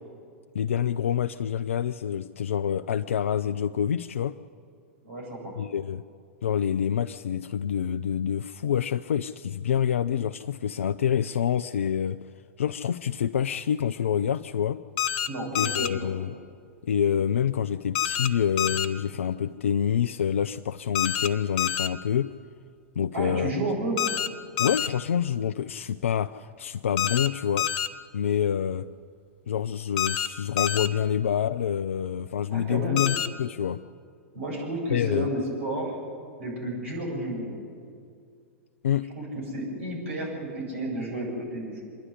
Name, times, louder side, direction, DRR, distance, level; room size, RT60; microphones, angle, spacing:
voice 1, 0.5-4.4 5.6-6.0 6.4-12.2 12.6-14.8 15.5-16.3 16.8-22.4 23.0-23.5 24.6-27.7 28.1-28.9 29.5-33.8 34.9-35.3 38.8-39.1, left 8 dB, 70° left, 9 dB, 0.4 m, -27 dB
voice 2, 5.0-5.6 15.3-16.1 23.1-24.0 32.5-33.0 34.3-36.0 36.4-37.6 39.2-41.8, right 1 dB, 70° right, -1 dB, 7.9 m, -32 dB
sound 1, 15.0-15.3 15.6-15.9 18.0-18.3 18.6-18.9 21.0-21.3 21.6-21.9 24.0-24.3 24.6-24.9 27.0-27.3 27.6-27.9 30.0-30.3 30.6-30.9 33.0-33.3, left 9 dB, 50° left, 1.0 m, -27 dB
26.0 x 11.5 x 9.8 m, 2.2 s
figure-of-eight pair, 100°, 7 cm